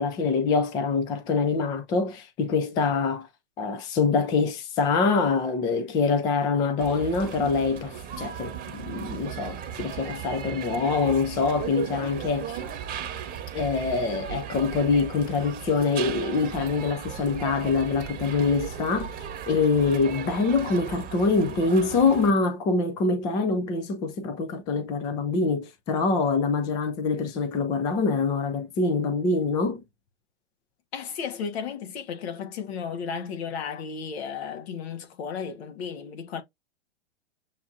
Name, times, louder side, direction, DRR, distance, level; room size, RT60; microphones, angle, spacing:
voice 1, 0.0-3.3 3.6-12.6 13.5-19.1 19.5-29.8, left 4 dB, 10° left, 0.3 m, -25 dB
sound 1, 6.8-22.3, right 8 dB, 25° right, 1.0 m, -36 dB
voice 2, 30.9-36.4, left 6 dB, 60° left, 1.2 m, -34 dB
7.1 x 2.5 x 2.6 m
hypercardioid pair, 125°, 36 cm